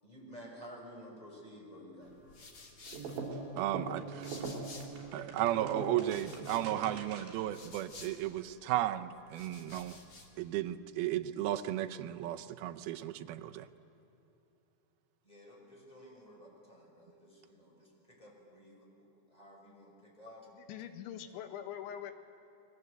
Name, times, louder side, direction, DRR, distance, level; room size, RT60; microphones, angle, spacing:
voice 1, 0.0-2.4 3.5-3.7 15.2-20.5, equal, 10° left, -1 dB, 5.3 m, -53 dB
sound 1, 2.0-5.2 5.5-8.6 9.2-10.4, left 3 dB, 35° left, 2.3 m, -54 dB
sound 2, 2.9-7.5, right 4 dB, 65° right, 5.5 m, -41 dB
voice 2, 3.6-4.3 5.1-10.0 10.4-13.7, right 13 dB, 80° right, 7 dB, 2.2 m, -34 dB
voice 3, 20.5-22.1, left 9 dB, 85° left, 8 dB, 3.7 m, -43 dB
30.0 x 22.0 x 8.0 m, 3.0 s
omnidirectional pair, 5.3 m